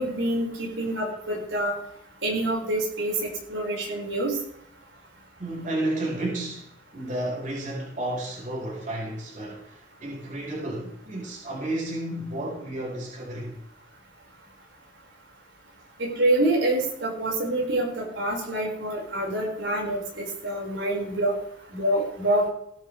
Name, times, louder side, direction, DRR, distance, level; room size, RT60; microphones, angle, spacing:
voice 1, 0.0-1.7 2.2-4.4 16.0-21.4 21.7-22.5, right 1 dB, 80° right, 5.3 m, -26 dB
voice 2, 5.4-13.6, right 1 dB, 45° right, 4.8 m, -32 dB
17.5 x 12.0 x 3.4 m
head